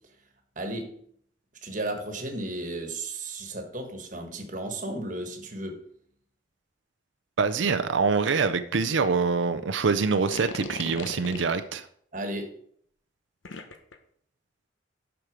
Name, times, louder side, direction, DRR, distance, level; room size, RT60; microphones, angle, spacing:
voice 1, 0.6-0.9 1.6-5.8 12.1-12.5, right 1 dB, 40° right, 4 dB, 1.3 m, -34 dB
voice 2, 7.4-11.8, right 5 dB, 75° right, 10 dB, 0.6 m, -25 dB
sound 1, 10.1-11.7 13.4-13.9, left 4 dB, 85° left, 0.9 m, -38 dB
7.8 x 6.0 x 5.1 m, 0.63 s
head